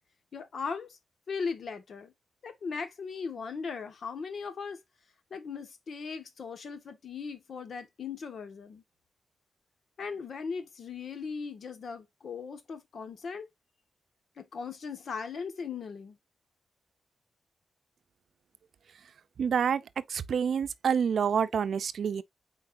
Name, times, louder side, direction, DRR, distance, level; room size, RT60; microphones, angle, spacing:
voice 1, 0.3-1.0 1.3-2.1 2.4-4.8 5.3-8.8 10.0-13.5 14.4-16.2, left 5 dB, 70° left, 1.5 m, -38 dB
voice 2, 19.4-19.8 20.1-22.2, right 7 dB, 85° right, 0.5 m, -27 dB
8.7 x 4.5 x 2.6 m
wide cardioid pair, 115°, 0 cm